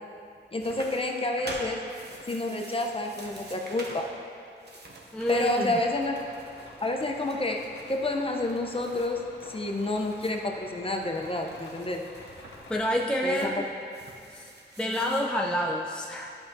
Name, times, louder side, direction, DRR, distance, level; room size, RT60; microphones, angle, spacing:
voice 1, 0.5-1.8 2.3-4.1 5.3-6.1 6.8-12.0 13.2-13.5, left 2 dB, 30° left, 2 dB, 0.8 m, -29 dB
sound 1, 0.6-4.1 4.5-10.4 10.8-15.3, right 2 dB, 65° right, 1.0 m, -46 dB
voice 2, 5.1-5.7 12.7-13.7 14.3-14.5 14.8-16.4, left 1 dB, 5° left, -1 dB, 0.4 m, -28 dB
sound 2, 5.2-13.1, left 2 dB, 85° left, 0.8 m, -49 dB
10.5 x 5.7 x 2.7 m, 2.5 s
cardioid pair, 50°, 19 cm